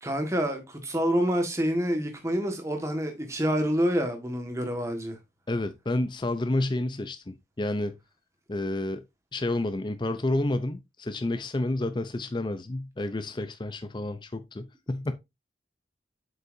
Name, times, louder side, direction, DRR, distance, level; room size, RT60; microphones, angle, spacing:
voice 1, 0.0-5.2, equal, 15° right, 1.5 m, -27 dB
voice 2, 5.5-8.0 8.5-9.0 9.3-15.1, left 2 dB, 25° left, 0.5 m, -30 dB
7.7 x 5.5 x 2.6 m
head